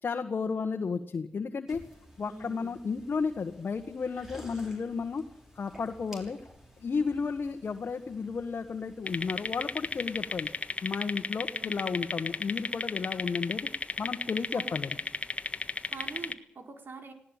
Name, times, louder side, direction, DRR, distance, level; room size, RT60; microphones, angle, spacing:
voice 1, 0.0-1.8 2.2-5.2 5.5-6.4 6.8-10.5 10.8-13.7 14.0-15.0, left 5 dB, 55° left, 4 dB, 1.6 m, -33 dB
sound 1, 1.7-10.6, equal, 10° right, 6.3 m, -54 dB
voice 2, 2.2-2.8 11.5-11.8 14.5-14.7 15.9-17.1, right 3 dB, 60° right, 5 dB, 4.5 m, -44 dB
sound 2, 9.1-16.3, left 3 dB, 35° left, 1.6 m, -34 dB
19.5 x 17.5 x 9.2 m, 0.68 s
cardioid pair, 85°, 4 cm